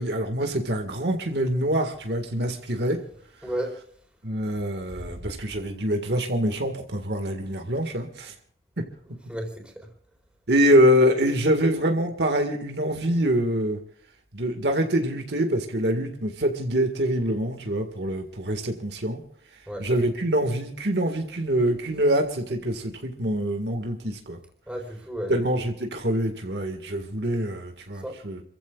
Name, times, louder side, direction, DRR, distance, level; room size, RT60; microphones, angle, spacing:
voice 1, 0.0-3.0 4.2-8.3 10.5-13.8 14.3-19.2 19.8-24.4 25.3-28.4, equal, 75° right, 1.9 m, -25 dB
voice 2, 3.4-3.8 9.3-9.9 19.7-19.9 24.7-25.3 28.0-28.2, right 1 dB, 5° right, 4.3 m, -33 dB
29.5 x 15.0 x 2.5 m
head